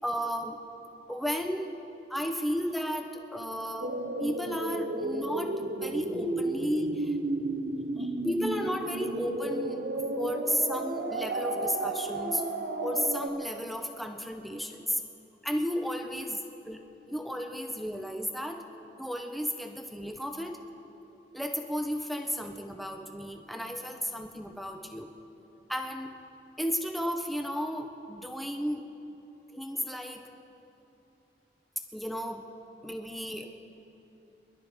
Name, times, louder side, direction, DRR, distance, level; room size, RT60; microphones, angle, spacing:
voice 1, 0.0-0.6 1.1-1.7 2.1-7.2 8.0-9.9 10.1-12.4 12.8-15.0 15.4-18.6 19.0-20.6 21.3-25.1 25.7-26.1 26.6-28.8 29.5-30.2 31.9-32.5 32.8-33.6, equal, ahead, 4 dB, 0.7 m, -33 dB
sound 1, 3.8-13.3, right 2 dB, 75° right, 0.9 m, -33 dB
24.5 x 12.0 x 3.5 m, 3.0 s
head